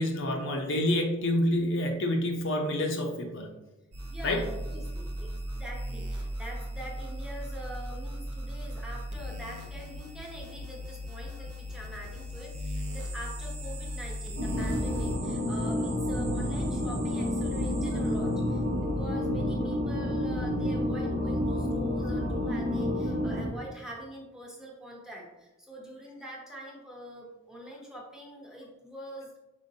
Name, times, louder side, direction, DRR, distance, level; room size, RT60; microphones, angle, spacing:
voice 1, 0.0-3.5 4.2-4.4, left 1 dB, 55° left, 2 dB, 0.6 m, -28 dB
sound 1, 3.9-15.2, equal, 90° right, 0.6 m, -37 dB
voice 2, 4.1-29.4, equal, 5° right, -2 dB, 0.8 m, -44 dB
sound 2, 12.1-18.6, right 5 dB, 35° right, 1.1 m, -47 dB
sound 3, 14.4-23.5, left 1 dB, 55° right, 0.8 m, -29 dB
5.0 x 3.6 x 2.7 m, 1.0 s
head